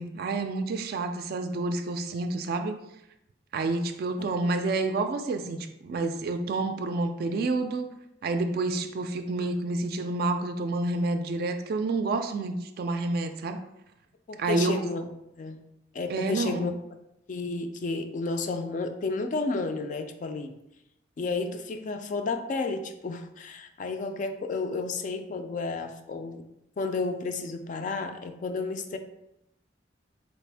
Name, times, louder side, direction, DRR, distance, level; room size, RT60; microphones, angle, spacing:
voice 1, 0.0-2.7 3.5-7.9 8.2-13.6 14.4-14.8 16.1-16.7, right 2 dB, 55° right, 7 dB, 0.3 m, -29 dB
voice 2, 4.2-4.5 14.3-15.1 15.4-15.6 15.9-16.7 17.3-20.5 21.2-26.5 26.8-29.0, left 3 dB, 45° left, 7 dB, 0.3 m, -32 dB
4.2 x 2.5 x 3.3 m, 0.83 s
head